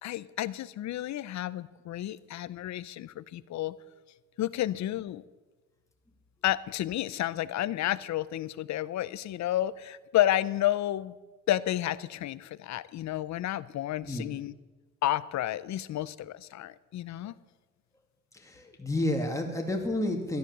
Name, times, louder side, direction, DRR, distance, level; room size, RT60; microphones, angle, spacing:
voice 1, 0.0-3.8 4.4-5.2 6.4-11.2 11.5-14.5 15.0-17.3, left 13 dB, 65° left, 18 dB, 0.6 m, -31 dB
voice 2, 18.3-20.4, left 1 dB, 10° left, 1 dB, 2.4 m, -30 dB
13.0 x 10.5 x 6.8 m, 1.3 s
cardioid pair, 90°, 30 cm